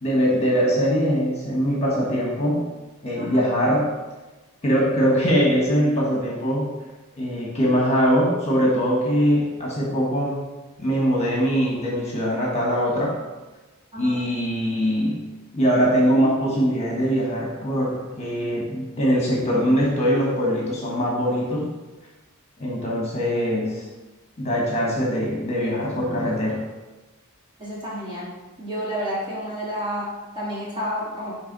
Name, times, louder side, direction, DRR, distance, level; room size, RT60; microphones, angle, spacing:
voice 1, 0.0-2.7 3.0-3.9 4.6-6.7 7.2-10.4 10.8-13.1 14.0-15.2 15.5-21.7 22.6-23.8 24.4-26.6, equal, 30° left, -3 dB, 1.3 m, -22 dB
voice 2, 3.2-3.5 13.9-14.2 27.6-28.3 28.6-31.3, equal, 20° right, -7 dB, 2.4 m, -30 dB
9.9 x 3.5 x 4.0 m, 1.2 s
head